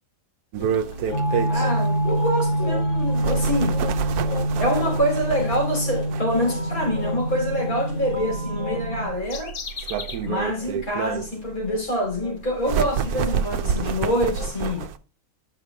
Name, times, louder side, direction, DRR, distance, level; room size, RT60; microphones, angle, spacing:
sound 1, 0.5-15.0, right 8 dB, 75° right, 1.1 m, -30 dB
sound 2, 0.6-10.3 10.6-10.8 11.1-14.9, left 7 dB, 45° left, 0.6 m, -38 dB
sound 3, 1.1-9.1, right 1 dB, 20° left, 5.1 m, -25 dB
voice 1, 1.5-3.8 4.6-9.5 10.2-14.9, equal, 65° left, 3.9 m, -26 dB
11.0 x 5.2 x 3.4 m
omnidirectional pair, 1.6 m